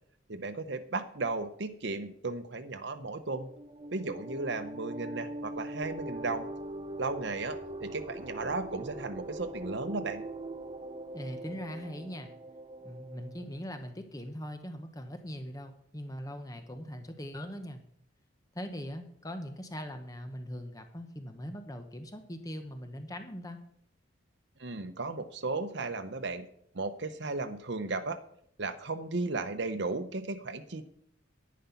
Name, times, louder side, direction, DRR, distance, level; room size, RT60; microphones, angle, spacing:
voice 1, 0.3-3.5 3.9-6.5 7.0-10.2 24.6-26.5 26.7-28.2 28.6-30.9, right 3 dB, 60° right, 8 dB, 0.8 m, -35 dB
sound 1, 3.3-13.6, right 1 dB, 25° right, 0.5 m, -42 dB
voice 2, 11.1-12.3 12.8-17.8 18.5-23.6, equal, 15° left, 7 dB, 0.8 m, -41 dB
11.0 x 9.4 x 5.7 m, 0.69 s
head